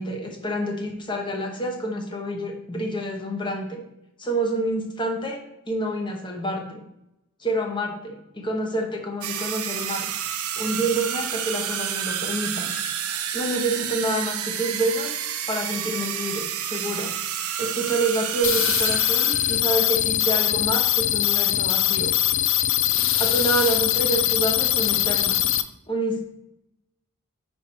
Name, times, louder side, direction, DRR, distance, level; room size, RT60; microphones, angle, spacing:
voice 1, 0.0-3.8 4.2-6.8 7.4-10.1 10.6-12.7 13.3-17.1 17.6-22.1 23.2-25.4 25.9-26.2, right 1 dB, 20° left, 2 dB, 0.9 m, -28 dB
sound 1, 9.2-19.6, right 9 dB, 80° right, 0.6 m, -29 dB
sound 2, 18.4-25.6, left 13 dB, 60° left, 0.4 m, -22 dB
5.9 x 4.5 x 4.4 m, 0.86 s
head